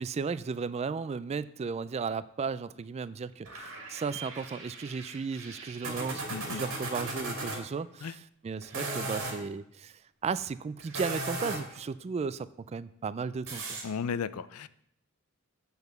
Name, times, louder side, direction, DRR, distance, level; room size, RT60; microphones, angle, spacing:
voice 1, 0.0-6.2 6.5-13.8, right 5 dB, 30° right, 16 dB, 0.3 m, -35 dB
sound 1, 3.5-7.6 8.6-9.4 10.8-11.8 13.5-13.8, right 2 dB, 70° right, 2.5 m, -37 dB
voice 2, 6.3-6.6 8.0-8.1 13.8-14.7, left 6 dB, 90° left, 16 dB, 0.5 m, -34 dB
8.1 x 7.0 x 6.6 m, 0.73 s
head